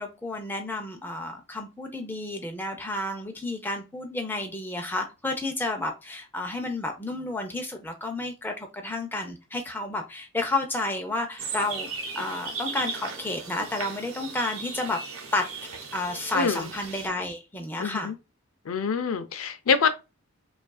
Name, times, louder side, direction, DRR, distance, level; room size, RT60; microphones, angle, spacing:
voice 1, 0.0-11.9 12.2-15.0 15.3-15.5 15.9-18.1, left 2 dB, 10° left, 0.6 m, -31 dB
sound 1, 11.4-17.1, right 4 dB, 80° right, 0.9 m, -37 dB
voice 2, 16.3-16.7 17.8-18.1 18.7-19.9, left 5 dB, 75° left, 0.5 m, -25 dB
5.0 x 2.5 x 2.3 m
head